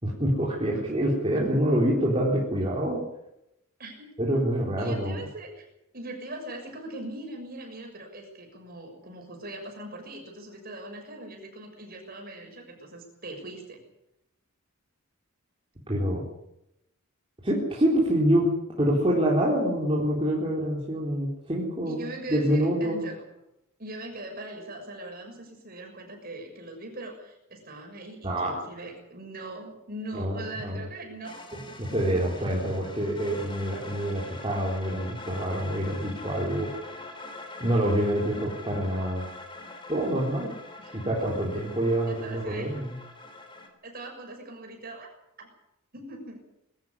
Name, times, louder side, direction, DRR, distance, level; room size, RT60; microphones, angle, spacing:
voice 1, 0.0-3.0 4.2-5.2 15.9-16.2 17.4-22.0 22.3-23.0 28.2-28.6 30.1-30.8 31.5-36.8 37.6-39.2 39.9-40.5 40.9-42.9, equal, 25° right, -4 dB, 4.0 m, -26 dB
voice 2, 0.8-1.1 1.3-1.8 3.8-4.1 4.8-5.6 5.9-13.8 21.9-23.3 23.8-31.4 31.7-32.2 40.8-40.9 41.2-41.3 42.1-42.8 43.8-45.1 45.4-45.5 45.9-46.4, right 1 dB, 45° right, 3 dB, 6.5 m, -41 dB
sound 1, 31.2-43.7, left 2 dB, 25° left, 3.5 m, -44 dB
22.0 x 13.0 x 9.9 m, 0.84 s
head